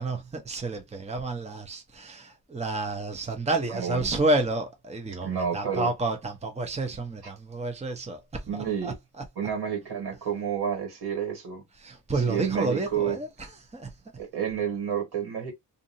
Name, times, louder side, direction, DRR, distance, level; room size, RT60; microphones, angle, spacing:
voice 1, 0.0-9.2 11.8-14.0, right 2 dB, 15° right, 0.8 m, -30 dB
voice 2, 3.7-4.1 5.2-5.9 8.5-8.9 9.4-11.6 12.3-13.2 14.2-15.5, right 8 dB, 80° right, 1.8 m, -30 dB
2.7 x 2.6 x 2.6 m
cardioid pair, 90°, 38 cm